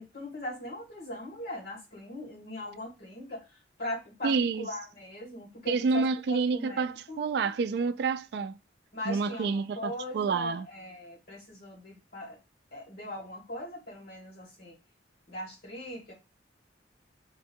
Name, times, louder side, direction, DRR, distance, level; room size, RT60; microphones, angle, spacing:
voice 1, 0.0-3.5 3.8-7.3 8.9-12.4 12.7-14.8 15.3-16.1, left 1 dB, 60° left, 2.1 m, -40 dB
voice 2, 4.2-4.7 5.7-8.6 9.1-10.7, right 4 dB, 60° right, 0.3 m, -28 dB
4.6 x 2.2 x 4.4 m
head